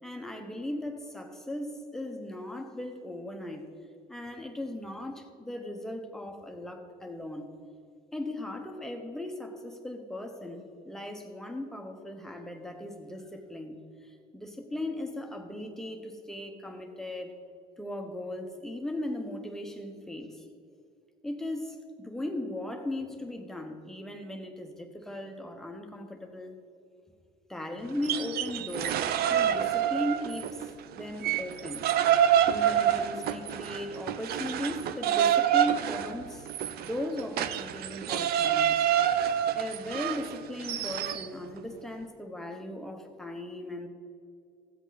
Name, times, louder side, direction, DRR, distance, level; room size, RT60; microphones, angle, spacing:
voice 1, 0.0-3.7 4.1-7.5 8.1-17.3 17.8-20.4 21.2-26.5 27.5-30.6 30.9-31.8 32.5-36.5 36.8-38.9 39.5-43.9, left 1 dB, 5° left, 3 dB, 1.2 m, -37 dB
sound 1, 27.9-30.7 31.0-41.3, right 10 dB, 70° right, 0.6 m, -27 dB
14.5 x 8.0 x 4.2 m, 2.4 s
cardioid pair, 110°, 17 cm